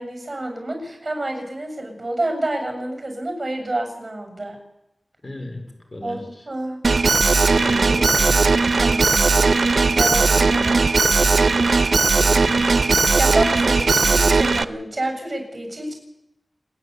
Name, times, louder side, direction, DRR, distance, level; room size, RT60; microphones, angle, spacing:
voice 1, 0.0-4.6 6.0-6.8 8.8-9.5 9.9-10.8 13.1-15.9, right 1 dB, 35° right, 4 dB, 7.5 m, -28 dB
voice 2, 5.2-6.5 7.6-8.4 12.2-12.8, left 1 dB, 45° left, 4 dB, 4.8 m, -35 dB
Alarm, 6.8-14.6, right 4 dB, 80° right, 0.8 m, -17 dB
29.0 x 10.5 x 8.4 m, 0.87 s
wide cardioid pair, 50°, 0 cm